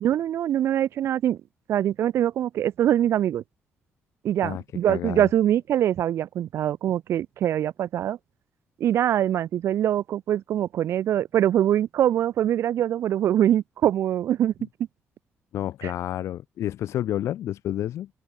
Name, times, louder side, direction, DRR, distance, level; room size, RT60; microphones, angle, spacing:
voice 1, 0.0-1.4 1.7-3.4 4.2-8.2 8.8-14.5 15.8-15.9, right 11 dB, 70° right, 0.5 m, -23 dB
voice 2, 4.9-5.3 15.5-18.1, left 12 dB, 80° left, 2.4 m, -29 dB
cardioid pair, 100°, 5 cm